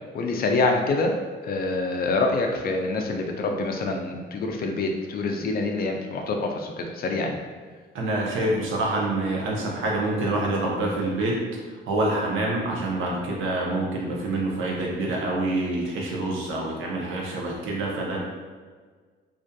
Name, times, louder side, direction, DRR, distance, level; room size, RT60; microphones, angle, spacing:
voice 1, 0.1-1.1 1.4-7.4, left 3 dB, 50° left, 3 dB, 0.4 m, -26 dB
voice 2, 7.9-11.4 11.9-18.2, right 2 dB, 80° right, -2 dB, 0.6 m, -26 dB
2.6 x 2.3 x 2.2 m, 1.5 s
cardioid pair, 90°, 20 cm